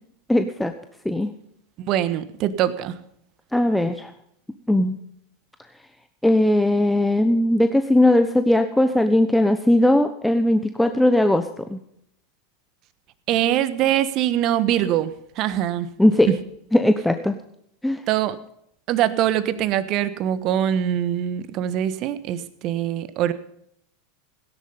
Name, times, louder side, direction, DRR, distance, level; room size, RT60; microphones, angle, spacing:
voice 1, 0.3-0.7 1.0-1.3 3.5-4.1 4.7-5.0 6.2-11.8 16.0-16.3 16.7-17.4 17.8-18.0, left 1 dB, 5° left, 8 dB, 1.0 m, -19 dB
voice 2, 1.8-2.9 13.3-15.9 18.1-18.3 18.9-23.3, right 11 dB, 45° right, 14 dB, 1.3 m, -23 dB
17.0 x 10.5 x 5.5 m, 0.72 s
hypercardioid pair, 90°, 0 cm